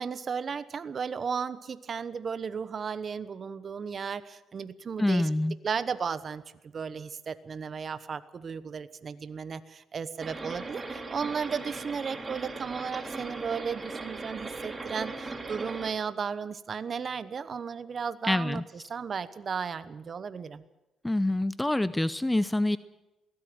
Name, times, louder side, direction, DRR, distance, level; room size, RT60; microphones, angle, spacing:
voice 1, 0.0-5.3 5.6-6.4 6.7-18.6 18.9-20.6, right 6 dB, 45° right, 14 dB, 1.0 m, -34 dB
voice 2, 5.0-5.6 18.2-18.6 21.0-22.8, left 1 dB, 10° left, 16 dB, 0.6 m, -26 dB
sound 1, 10.2-15.9, right 3 dB, 25° right, 3.3 m, -38 dB
22.5 x 16.5 x 7.8 m, 1.0 s
cardioid pair, 90°, 0 cm